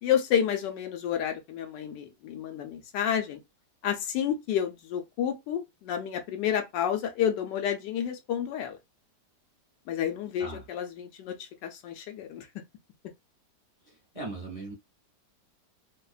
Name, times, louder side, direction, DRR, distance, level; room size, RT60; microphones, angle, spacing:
voice 1, 0.0-3.4 3.8-8.8 9.9-12.5, left 9 dB, 85° left, 1.2 m, -30 dB
voice 2, 13.8-14.7, right 2 dB, 25° left, 0.9 m, -39 dB
3.2 x 2.1 x 2.3 m
omnidirectional pair, 1.9 m